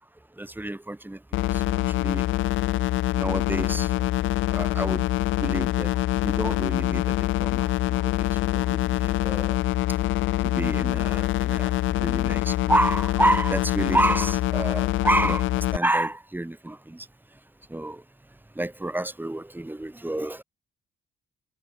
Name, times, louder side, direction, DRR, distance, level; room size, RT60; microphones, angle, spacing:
voice 1, 0.4-2.3 3.2-4.0 4.5-5.1 5.4-9.6 10.4-17.1 17.7-18.0 18.5-20.4, right 1 dB, 10° right, 6.4 m, -29 dB
sound 1, 1.3-15.8, left 16 dB, 75° left, 0.5 m, -25 dB
cardioid pair, 90°, 20 cm